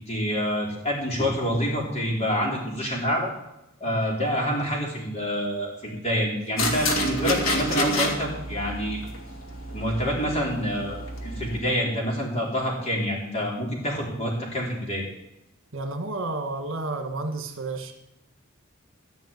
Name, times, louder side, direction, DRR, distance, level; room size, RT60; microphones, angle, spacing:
voice 1, 0.1-3.3 3.8-9.0 9.7-15.1, equal, 30° left, -2 dB, 4.3 m, -27 dB
sound 1, 6.6-11.6, left 1 dB, 70° left, 2.2 m, -29 dB
voice 2, 15.7-17.9, right 2 dB, 65° right, 4 dB, 1.8 m, -31 dB
15.0 x 5.8 x 9.4 m, 0.87 s
head